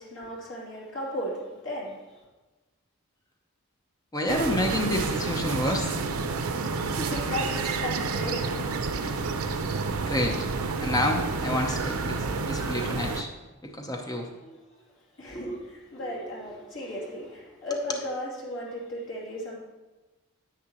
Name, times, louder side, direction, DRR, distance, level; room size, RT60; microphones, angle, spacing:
voice 1, 0.0-2.2 6.6-8.7 14.4-14.6 15.2-19.5, left 1 dB, 60° left, -5 dB, 2.7 m, -35 dB
voice 2, 4.1-5.9 10.0-10.5 10.8-13.3 13.6-14.3, left 1 dB, 15° left, 2 dB, 0.7 m, -29 dB
sound 1, 4.3-13.2, right 4 dB, 85° right, 0.6 m, -29 dB
10.0 x 7.8 x 3.0 m, 1.2 s
head